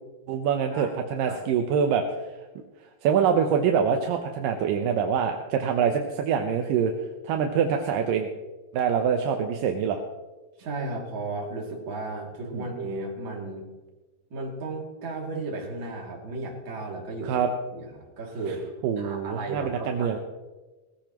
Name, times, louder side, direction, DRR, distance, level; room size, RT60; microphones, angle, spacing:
voice 1, 0.3-2.0 3.0-6.9 7.2-8.3 8.7-10.0 12.5-12.6 17.3-17.5 18.8-20.2, right 7 dB, 80° right, 4 dB, 2.5 m, -25 dB
voice 2, 10.6-13.6 14.3-17.4 17.7-18.6 19.0-20.2, right 2 dB, 35° right, -2 dB, 3.1 m, -34 dB
19.5 x 15.5 x 3.0 m, 1.2 s
omnidirectional pair, 3.9 m